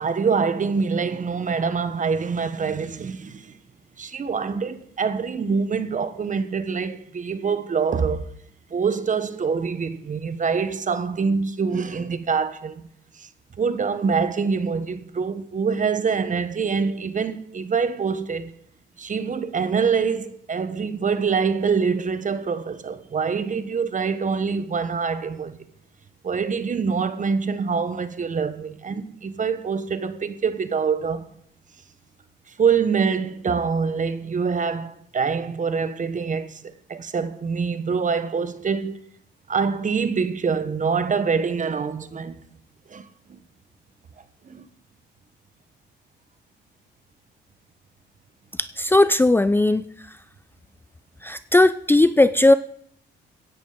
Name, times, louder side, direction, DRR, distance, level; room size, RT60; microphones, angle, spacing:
voice 1, 0.0-3.5 4.0-8.3 8.7-12.9 13.1-13.3 13.6-18.5 19.0-25.6 26.2-31.2 32.6-39.0 39.5-42.4 42.9-43.4 44.4-44.7, right 5 dB, 40° right, 1.4 m, -25 dB
voice 2, 48.6-49.9 51.2-52.5, left 2 dB, 10° left, 0.5 m, -17 dB
16.0 x 10.5 x 5.2 m
cardioid pair, 90°, 20 cm